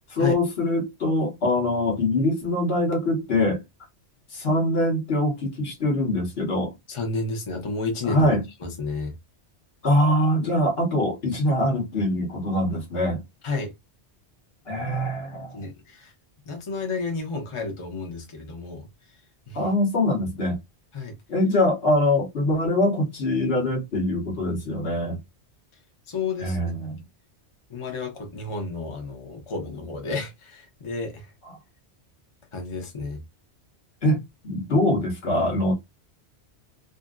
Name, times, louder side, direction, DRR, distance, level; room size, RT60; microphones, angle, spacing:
voice 1, 0.1-3.6 4.3-6.7 8.1-8.4 9.8-13.2 14.7-15.6 19.5-20.6 21.3-25.2 26.4-27.0 34.0-35.7, left 1 dB, 60° left, 1.2 m, -23 dB
voice 2, 6.9-8.3 8.6-9.2 13.4-13.7 15.5-16.1 16.5-19.2 19.5-19.7 20.9-21.2 26.1-26.7 27.7-31.3 32.5-33.2, left 3 dB, 30° left, 0.8 m, -31 dB
2.7 x 2.6 x 2.4 m
omnidirectional pair, 1.2 m